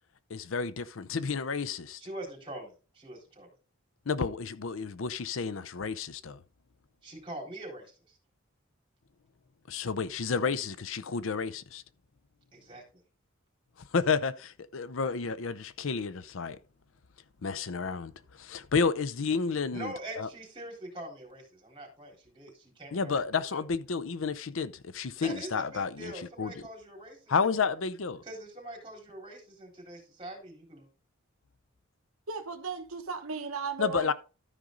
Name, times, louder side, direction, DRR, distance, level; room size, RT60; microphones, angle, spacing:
voice 1, 0.3-2.0 4.1-6.4 9.7-11.8 13.9-16.6 17.4-18.1 18.4-20.3 22.9-26.1 26.4-26.5 27.3-28.2 33.8-34.1, left 5 dB, 65° left, 0.6 m, -31 dB
voice 2, 2.0-3.5 7.0-8.2 12.5-12.8 19.7-23.6 25.2-27.6 28.2-30.9, right 1 dB, 25° right, 3.8 m, -44 dB
voice 3, 32.3-34.1, right 5 dB, 85° right, 1.1 m, -36 dB
13.0 x 5.2 x 3.8 m
head